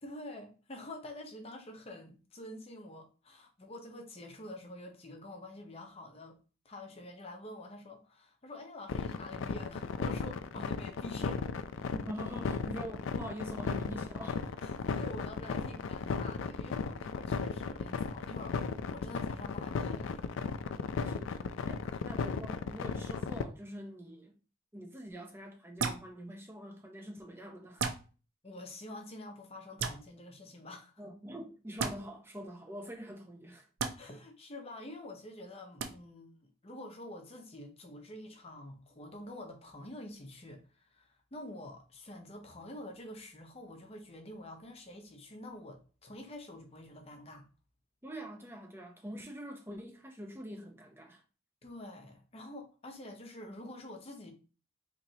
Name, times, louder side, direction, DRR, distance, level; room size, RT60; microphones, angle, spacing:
voice 1, 0.0-6.4 6.6-11.4 14.6-18.6 18.9-20.3 21.9-22.0 28.4-30.9 33.9-47.5 51.6-54.3, left 1 dB, 30° left, 0.6 m, -47 dB
sound 1, 8.9-23.4, left 5 dB, 70° left, 0.3 m, -35 dB
voice 2, 12.1-14.7 20.5-24.4 24.7-27.9 31.0-33.7 48.0-51.2, equal, 10° right, 0.4 m, -45 dB
sound 2, 25.8-26.0 27.8-28.0 29.8-30.0 31.8-31.9 33.8-33.9 35.8-35.9, right 5 dB, 65° right, 0.5 m, -32 dB
4.1 x 2.9 x 2.7 m
head